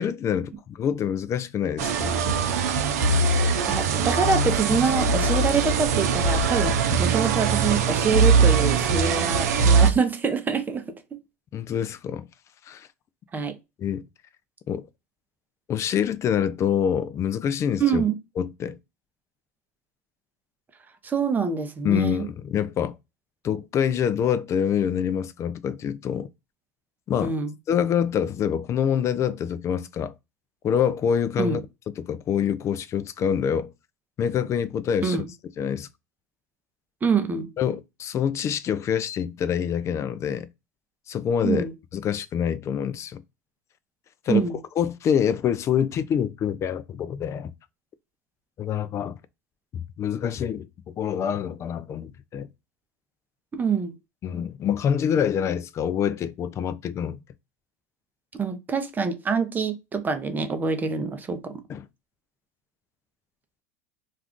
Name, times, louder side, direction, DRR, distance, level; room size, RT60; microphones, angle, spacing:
voice 1, 0.0-2.2 6.9-7.0 11.5-12.3 12.7-12.9 13.8-14.0 14.7-14.9 15.7-18.0 18.4-18.8 21.8-23.0 23.4-26.3 27.1-27.3 27.7-30.1 30.6-31.6 32.0-33.7 34.2-35.2 35.6-35.9 37.6-40.5 41.1-43.2 44.3-47.5 48.6-49.2 49.7-52.5 54.2-57.2 61.7-61.9, left 8 dB, 35° left, 0.3 m, -26 dB
sound 1, 1.8-9.9, right 5 dB, 80° right, 0.5 m, -21 dB
voice 2, 3.7-10.8 11.1-11.2 13.3-13.5 17.8-18.1 21.0-22.3 27.2-27.5 31.4-31.6 35.0-35.2 37.0-37.5 41.4-41.7 44.3-44.6 53.5-53.9 58.4-61.5, right 5 dB, 20° right, 0.6 m, -25 dB
2.5 x 2.3 x 3.5 m
hypercardioid pair, 100°, 8 cm